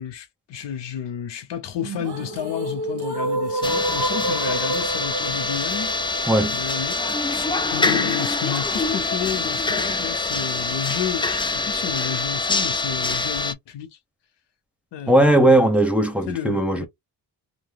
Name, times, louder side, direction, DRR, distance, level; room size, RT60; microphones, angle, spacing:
voice 1, 0.0-5.9 6.4-7.0 7.3-13.9 14.9-15.3 16.3-16.9, left 9 dB, 85° left, 0.8 m, -31 dB
sound 1, 1.8-7.8, right 2 dB, 65° right, 1.0 m, -29 dB
sound 2, 3.6-13.5, left 3 dB, 15° left, 0.3 m, -25 dB
voice 2, 6.3-6.6 15.1-16.9, right 1 dB, 5° right, 0.8 m, -18 dB
2.6 x 2.2 x 3.3 m
cardioid pair, 100°, 41 cm